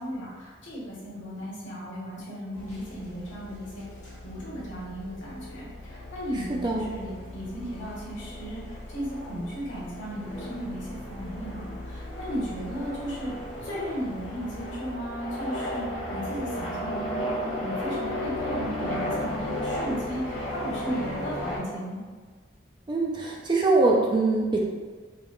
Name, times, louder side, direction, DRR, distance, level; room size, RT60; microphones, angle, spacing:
voice 1, 0.0-3.8 4.2-17.3 17.6-22.0, equal, 65° left, -7 dB, 1.3 m, -36 dB
sound 1, 2.5-21.6, left 1 dB, 35° left, 1.2 m, -35 dB
voice 2, 6.5-6.8 22.9-24.6, right 3 dB, 25° right, -2 dB, 0.3 m, -23 dB
3.8 x 3.5 x 2.3 m, 1.4 s
head